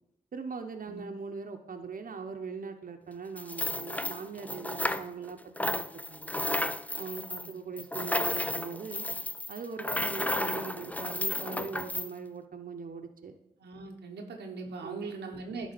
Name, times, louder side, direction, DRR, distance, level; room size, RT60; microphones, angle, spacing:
voice 1, 0.3-6.4 7.0-9.1 9.5-13.3 14.8-15.1, right 5 dB, 55° right, 5 dB, 0.9 m, -40 dB
sound 1, 3.4-5.3 5.6-12.1, left 1 dB, 10° left, 0.5 m, -33 dB
voice 2, 7.2-7.5 13.6-15.7, right 3 dB, 85° right, 2 dB, 0.9 m, -41 dB
10.5 x 3.6 x 5.1 m, 0.81 s
supercardioid pair, 40°, 17 cm